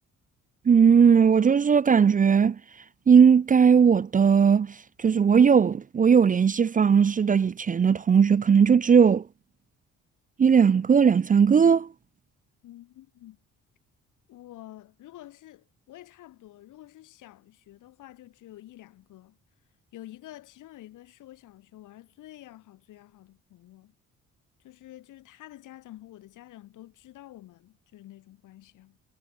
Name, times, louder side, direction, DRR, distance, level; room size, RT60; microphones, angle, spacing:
voice 1, 0.7-2.6 3.1-9.2 10.4-11.9, right 6 dB, 25° right, 0.5 m, -18 dB
voice 2, 12.6-13.4 14.3-19.4 19.9-23.9 24.6-29.0, left 14 dB, 85° left, 6.1 m, -49 dB
cardioid pair, 90°, 30 cm